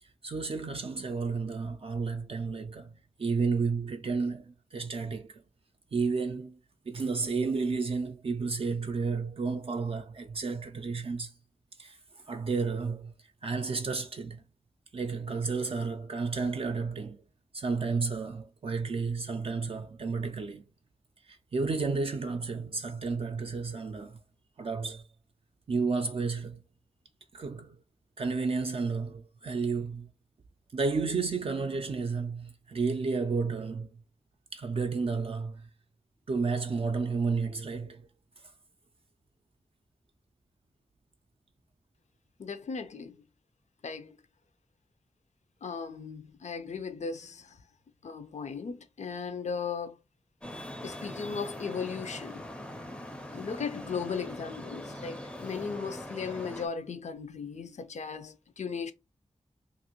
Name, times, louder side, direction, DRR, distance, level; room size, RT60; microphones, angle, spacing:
voice 1, 0.0-5.4 5.9-6.6 6.9-11.3 11.8-13.1 13.4-14.4 14.9-17.2 17.5-20.6 21.2-24.2 24.6-25.1 25.7-26.6 27.3-27.8 28.2-30.1 30.7-33.9 34.5-35.7 36.3-38.0, right 4 dB, 50° right, 0.4 m, -32 dB
voice 2, 42.4-43.2 43.8-44.2 45.6-47.6 48.0-50.0 50.8-52.5 53.3-58.9, left 5 dB, 75° left, 0.5 m, -37 dB
Traffic noise roadway noise, 50.4-56.7, left 1 dB, 10° left, 0.5 m, -42 dB
2.8 x 2.5 x 2.8 m
wide cardioid pair, 80°, 12 cm